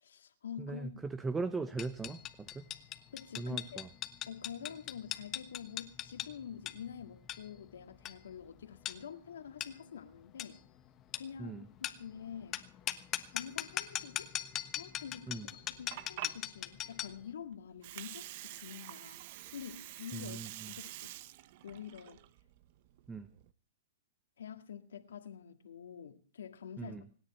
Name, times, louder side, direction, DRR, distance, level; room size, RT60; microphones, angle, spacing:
voice 1, 0.0-0.9 3.1-3.8 4.3-10.6 11.1-12.6 13.3-14.3 14.7-19.2 19.5-20.4 20.7-21.1 21.6-22.2 24.4-27.0, left 8 dB, 75° left, 7 dB, 2.0 m, -47 dB
voice 2, 0.6-2.7 3.4-3.9 11.4-11.7 15.3-15.5 20.1-20.7 23.1-23.3 26.8-27.0, right 3 dB, 10° right, 13 dB, 0.8 m, -39 dB
sound 1, 1.8-17.2, left 12 dB, 30° left, 1.2 m, -41 dB
Water, 15.6-23.5, right 15 dB, 50° right, 0.8 m, -48 dB
26.0 x 9.9 x 4.3 m, 0.41 s
hypercardioid pair, 130°, 0 cm